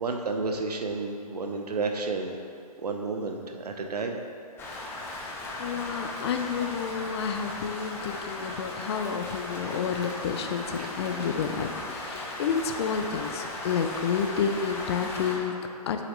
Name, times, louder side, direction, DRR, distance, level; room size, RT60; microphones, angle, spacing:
voice 1, 0.0-2.4 2.8-4.2 10.8-10.9, right 3 dB, 75° right, 3 dB, 0.9 m, -31 dB
Rain, 4.6-15.4, left 2 dB, 10° left, 0.8 m, -37 dB
voice 2, 5.6-16.0, left 6 dB, 40° left, 6 dB, 0.6 m, -30 dB
7.9 x 7.0 x 3.2 m, 2.5 s
hypercardioid pair, 140°, 20 cm